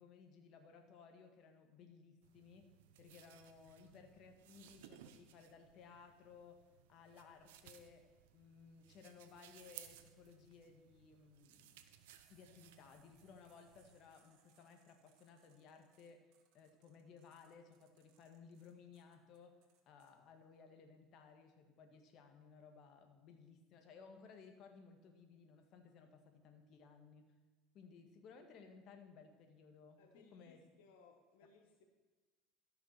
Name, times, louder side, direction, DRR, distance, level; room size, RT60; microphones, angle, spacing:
voice 1, 0.0-6.6 6.9-8.1 8.3-11.8 12.3-19.6 19.9-27.3 27.7-30.6, left 5 dB, 55° left, 5 dB, 1.7 m, -60 dB
sound 1, 2.2-14.0, right 11 dB, 85° right, 0.8 m, -61 dB
sound 2, 12.0-20.1, right 8 dB, 70° right, 1.5 m, -75 dB
voice 2, 30.0-31.8, left 5 dB, 80° left, 3 dB, 1.3 m, -65 dB
13.5 x 6.0 x 6.6 m, 1.3 s
supercardioid pair, 110°, 0 cm